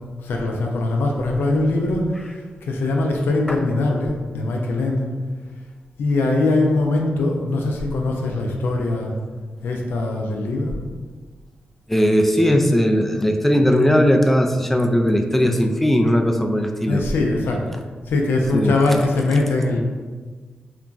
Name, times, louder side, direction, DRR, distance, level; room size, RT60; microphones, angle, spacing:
voice 1, 0.2-2.4 2.6-5.0 6.0-9.1 9.6-10.8 16.9-17.6 18.1-19.8, left 2 dB, 85° left, 1 dB, 0.4 m, -21 dB
voice 2, 11.9-17.0 18.5-18.8, equal, 5° left, 4 dB, 0.3 m, -18 dB
2.9 x 2.2 x 2.5 m, 1.4 s
cardioid pair, 55°, 4 cm